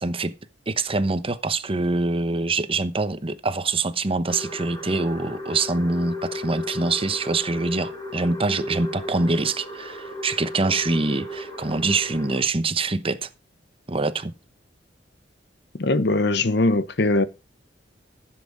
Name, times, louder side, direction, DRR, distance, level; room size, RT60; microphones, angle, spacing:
voice 1, 0.0-0.3 0.7-13.3 13.9-14.3, right 3 dB, 30° right, 0.9 m, -25 dB
sound 1, 4.3-12.4, left 1 dB, 25° left, 4.5 m, -35 dB
voice 2, 15.8-17.2, left 2 dB, 65° left, 1.0 m, -21 dB
14.5 x 7.6 x 5.0 m
head